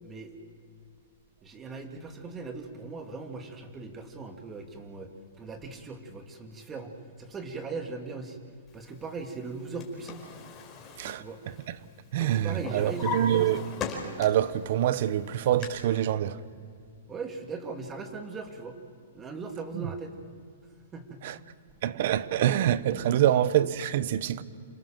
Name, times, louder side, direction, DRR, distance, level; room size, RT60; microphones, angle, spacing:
voice 1, 0.0-0.3 1.4-5.1 5.4-6.9 7.2-8.4 8.7-10.2 11.2-11.4 12.3-13.6 17.1-18.8 19.1-20.1 20.9-21.2 22.9-23.2, right 4 dB, 15° right, 2.4 m, -39 dB
Drawer open or close, 9.4-11.9 12.2-14.5 15.0-15.6, left 4 dB, 20° left, 4.7 m, -38 dB
voice 2, 12.1-13.6 14.2-16.4 21.2-21.3 21.8-24.4, right 11 dB, 55° right, 1.0 m, -25 dB
27.0 x 18.0 x 7.5 m
hypercardioid pair, 140°, 0 cm